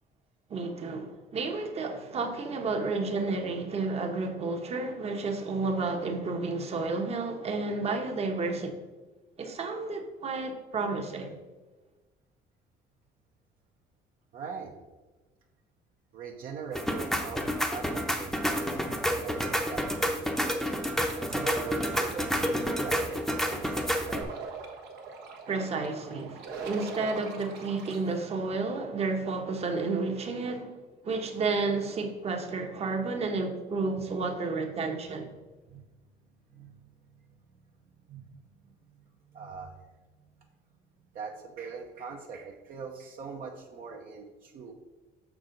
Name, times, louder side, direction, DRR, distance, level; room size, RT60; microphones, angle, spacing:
voice 1, 0.5-8.8 9.4-11.4 25.5-30.8 31.0-35.3, right 3 dB, 40° right, 1.0 m, -31 dB
voice 2, 14.3-14.7 16.1-20.6 21.2-24.3 35.7-35.8 36.5-36.8 38.1-38.4 38.8-38.9 39.3-40.0 41.1-44.7, right 5 dB, 60° right, 0.9 m, -41 dB
sound 1, 16.8-24.2, equal, ahead, 0.8 m, -29 dB
sound 2, 21.1-28.0, right 5 dB, 80° right, 1.1 m, -43 dB
6.1 x 6.0 x 3.8 m
cardioid pair, 110°, 17 cm